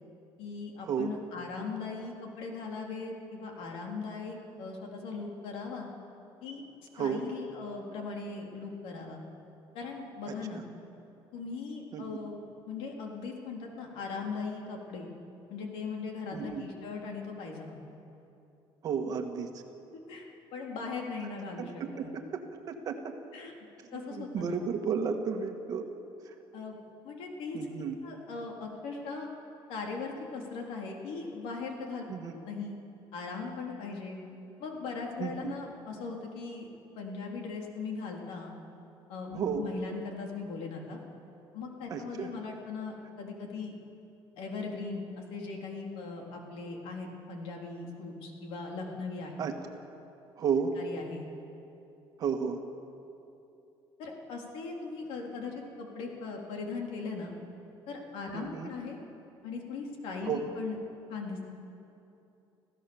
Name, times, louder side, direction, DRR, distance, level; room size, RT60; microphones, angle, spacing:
voice 1, 0.4-5.9 6.4-6.6 7.0-9.2 9.7-10.6 11.3-12.4 12.7-15.1 15.5-17.8 19.9-20.3 20.5-22.1 23.3-23.5 23.9-24.6 26.5-26.8 27.0-27.6 28.0-29.3 29.7-32.0 32.5-32.8 33.1-34.2 34.6-36.7 37.0-38.5 39.1-41.0 41.5-43.8 44.4-45.0 45.3-49.4 50.8-51.3 54.0-57.3 57.9-59.0 59.4-60.8 61.1-61.4, left 4 dB, 85° left, 0 dB, 3.6 m, -39 dB
voice 2, 16.3-16.6 18.8-19.5 21.6-22.4 22.7-23.1 23.8-25.9 26.2-26.3 27.5-28.0 32.1-32.4 35.2-35.5 39.3-39.7 41.9-42.3 49.4-49.5 50.4-50.7 52.2-52.6 58.3-58.7 60.2-60.4, right 6 dB, 40° right, 5 dB, 1.7 m, -33 dB
27.5 x 15.5 x 7.1 m, 2.8 s
cardioid pair, 175°, 9 cm